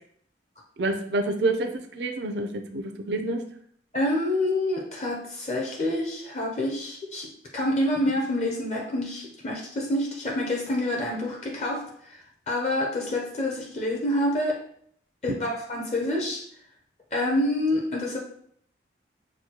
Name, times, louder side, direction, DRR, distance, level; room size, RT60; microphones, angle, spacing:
voice 1, 0.8-3.4, right 2 dB, 70° right, 5 dB, 0.5 m, -28 dB
voice 2, 3.9-12.2 12.5-14.6 15.2-16.4 17.1-18.2, left 1 dB, 40° left, 0 dB, 0.6 m, -27 dB
6.2 x 2.2 x 2.8 m, 0.65 s
head